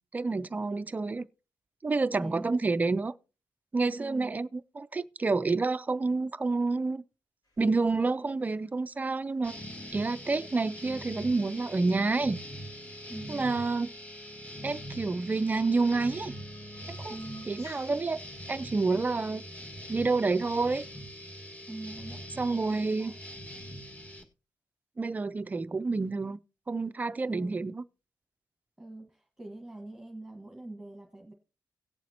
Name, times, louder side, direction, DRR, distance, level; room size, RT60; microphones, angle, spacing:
voice 1, 0.1-1.3 1.8-3.1 3.7-4.5 4.8-7.0 7.6-9.6 9.9-12.4 13.3-13.9 14.6-16.3 16.9-17.2 17.5-18.2 18.5-19.4 19.9-20.8 22.4-23.1 25.0-26.4 26.7-27.8, right 3 dB, 20° right, 0.4 m, -28 dB
voice 2, 2.2-2.6 3.9-4.4 13.1-13.5 17.1-17.5 21.7-23.2 27.2-27.7 28.8-31.3, right 2 dB, 5° right, 1.5 m, -44 dB
sound 1, 7.4-21.5, left 1 dB, 70° left, 4.1 m, -63 dB
sound 2, 9.4-24.2, equal, 20° left, 1.7 m, -43 dB
17.5 x 7.3 x 2.9 m
wide cardioid pair, 135°, 7 cm